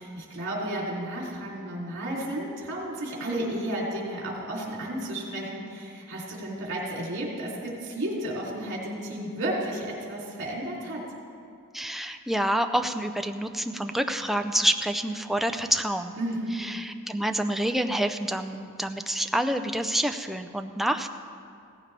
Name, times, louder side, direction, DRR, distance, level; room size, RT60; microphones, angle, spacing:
voice 1, 0.0-11.0 16.2-16.7, right 1 dB, 60° right, -4 dB, 3.1 m, -32 dB
voice 2, 11.7-16.2 16.6-21.1, right 1 dB, ahead, 6 dB, 0.5 m, -27 dB
17.0 x 15.0 x 3.4 m, 2.4 s
head